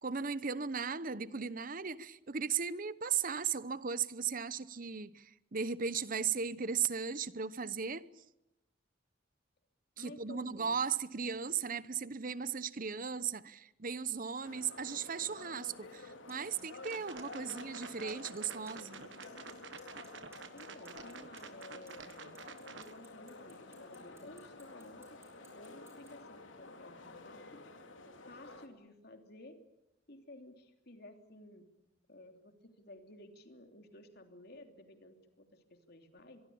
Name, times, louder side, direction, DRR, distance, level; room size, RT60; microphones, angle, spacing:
voice 1, 0.0-8.0 10.0-19.0, right 6 dB, 45° right, 0.9 m, -37 dB
voice 2, 10.0-10.8 17.4-17.5 20.5-22.4 22.7-25.2 25.5-27.6 28.3-29.6 30.1-31.7 32.1-36.4, left 1 dB, 55° left, 3.1 m, -54 dB
sound 1, 14.4-28.7, left 3 dB, 85° left, 3.0 m, -51 dB
Clock, 16.3-16.4 16.6-16.9 17.2-17.8 18.1-18.4 18.7-19.5 19.8-26.1, right 4 dB, 15° right, 7.8 m, -60 dB
sound 2, 16.8-23.0, right 6 dB, 70° right, 1.3 m, -51 dB
24.0 x 23.5 x 8.7 m
head